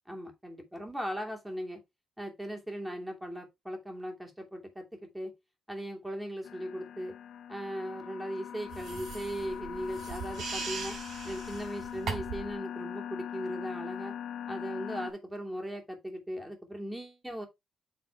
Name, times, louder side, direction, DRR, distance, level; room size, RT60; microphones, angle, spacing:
voice 1, 0.1-1.8 2.2-5.3 5.7-7.1 7.5-11.0 11.2-14.2 14.5-17.5, equal, 5° right, 2.7 m, -38 dB
sound 1, 6.4-15.1, left 9 dB, 70° left, 1.3 m, -41 dB
sound 2, 8.7-12.5, right 5 dB, 70° right, 3.7 m, -39 dB
7.8 x 3.7 x 4.5 m
cardioid pair, 90°, 0 cm